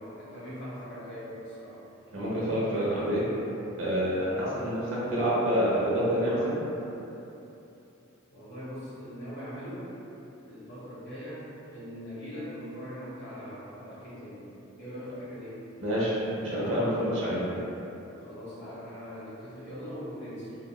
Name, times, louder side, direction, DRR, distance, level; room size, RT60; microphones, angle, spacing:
voice 1, 0.0-1.8 8.3-9.9 10.4-14.4 14.7-15.6 18.2-20.6, equal, 55° left, -10 dB, 1.1 m, -41 dB
voice 2, 2.1-3.2 3.8-4.8 5.1-6.7 15.8-17.4, equal, 65° right, -8 dB, 0.8 m, -27 dB
3.9 x 2.0 x 2.2 m, 2.9 s
head